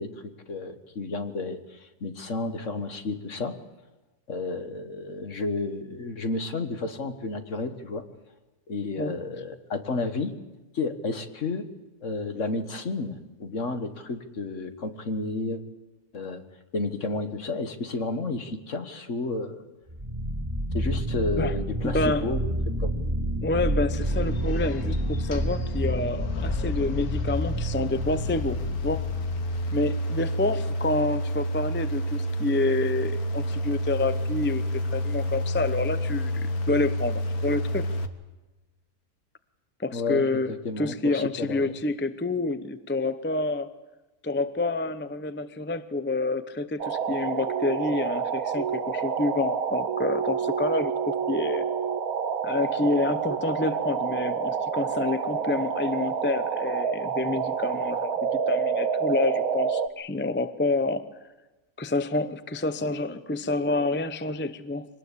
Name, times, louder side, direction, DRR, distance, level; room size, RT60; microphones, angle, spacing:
voice 1, 0.0-3.6 4.3-8.0 8.7-10.4 10.7-11.7 12.0-15.6 16.1-16.4 16.7-19.6 20.7-22.9 39.9-41.7, left 3 dB, 50° left, 8 dB, 1.8 m, -31 dB
sound 1, 19.9-29.7, equal, 15° right, 4.0 m, -29 dB
voice 2, 21.8-22.3 23.4-29.0 29.7-37.9 39.8-43.7 44.2-51.6 52.4-61.0 61.8-64.9, left 2 dB, 15° left, 11 dB, 0.4 m, -28 dB
sound 2, 24.0-38.1, equal, 65° left, 1.7 m, -30 dB
sound 3, 46.8-59.9, right 6 dB, 65° right, 1.5 m, -28 dB
24.0 x 19.0 x 8.5 m, 1.1 s
omnidirectional pair, 1.7 m